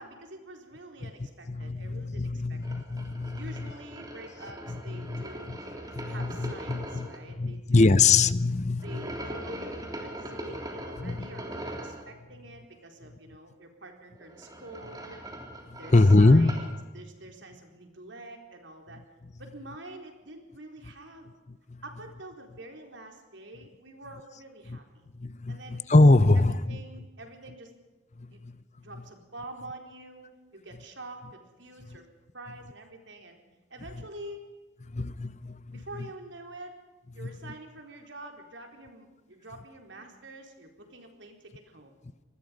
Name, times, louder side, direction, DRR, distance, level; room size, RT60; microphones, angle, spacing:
voice 1, 0.0-2.6 3.4-5.6 6.1-8.1 8.8-15.3 15.8-19.0 19.4-21.3 21.8-25.0 25.5-25.8 26.3-27.7 28.3-28.4 28.8-30.3 30.5-32.1 32.3-33.4 33.7-34.4 35.7-36.8 37.1-42.0, right 2 dB, 70° right, 4 dB, 4.3 m, -46 dB
voice 2, 1.5-3.6 4.7-5.6 5.9-7.1 7.4-9.0 11.0-11.3 15.7-16.5 21.5-21.8 24.7-24.8 25.2-26.8 28.2-28.6 34.9-35.8 37.2-37.3, left 3 dB, 35° left, 15 dB, 0.8 m, -23 dB
sound 1, 2.6-7.2 8.8-12.0 14.1-16.7, right 1 dB, 20° right, 3.5 m, -41 dB
26.5 x 20.0 x 5.3 m, 1.2 s
head